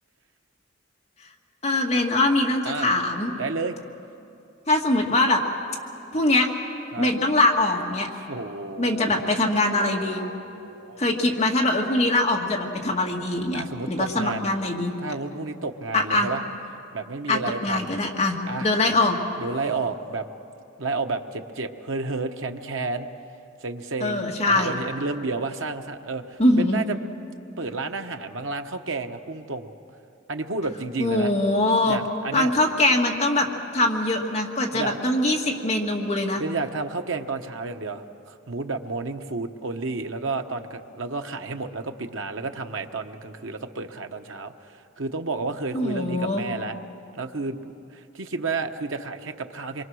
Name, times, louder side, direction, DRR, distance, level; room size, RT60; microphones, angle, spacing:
voice 1, 1.6-3.3 4.7-5.4 6.1-6.5 7.0-8.1 8.8-10.2 11.0-14.9 15.9-16.3 17.3-19.2 24.0-24.7 26.4-26.8 31.0-32.0 32.3-33.5 33.7-36.4 45.7-46.4, left 2 dB, 35° left, 0 dB, 1.9 m, -22 dB
voice 2, 3.4-3.7 6.9-7.1 8.1-9.3 9.7-11.0 13.5-14.5 15.0-16.4 16.9-17.9 18.5-18.7 19.4-20.3 20.8-23.1 23.6-27.0 27.6-29.7 30.3-31.3 31.8-32.5 34.7-34.9 36.4-46.8 47.1-47.6 47.9-49.8, right 3 dB, 80° right, 6 dB, 1.1 m, -31 dB
26.0 x 23.5 x 6.3 m, 2.7 s
head